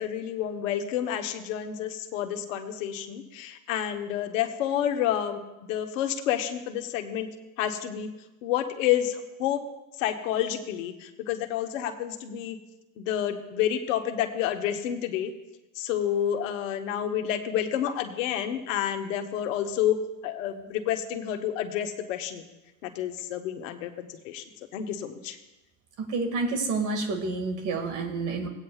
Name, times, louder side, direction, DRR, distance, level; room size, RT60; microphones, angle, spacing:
voice 1, 0.0-5.4 5.7-7.3 7.6-8.1 8.4-9.6 10.0-12.6 13.0-15.3 15.7-20.0 20.2-22.4 22.8-24.4 24.7-25.4, left 10 dB, 80° left, 6 dB, 1.2 m, -29 dB
voice 2, 26.1-28.5, right 3 dB, 50° right, 5 dB, 2.1 m, -29 dB
18.0 x 9.0 x 2.4 m, 1.0 s
supercardioid pair, 100°, 38 cm